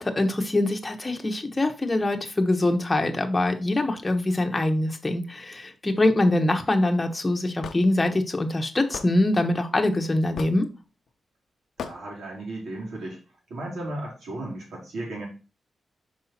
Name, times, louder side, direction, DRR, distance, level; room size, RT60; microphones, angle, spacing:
voice 1, 0.0-10.7, left 1 dB, 20° left, 4 dB, 1.0 m, -24 dB
Hammer / Wood, 7.6-7.8 8.9-9.1 10.4-10.6 11.8-12.0, left 6 dB, 80° left, 0.6 m, -35 dB
voice 2, 11.8-13.2 13.5-15.3, right 1 dB, 90° right, -3 dB, 3.4 m, -35 dB
5.5 x 4.9 x 4.2 m, 0.32 s
wide cardioid pair, 125°, 0 cm